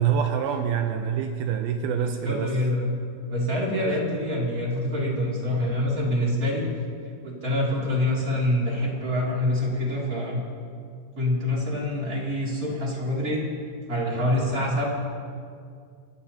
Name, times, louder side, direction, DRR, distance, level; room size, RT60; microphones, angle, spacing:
voice 1, 0.0-2.5, right 8 dB, 85° right, 5 dB, 2.1 m, -25 dB
voice 2, 2.0-2.9 3.3-6.6 7.1-10.4 11.2-13.4 13.9-14.8, left 1 dB, 25° right, -4 dB, 2.3 m, -26 dB
25.0 x 15.0 x 2.9 m, 2.2 s
omnidirectional pair, 5.2 m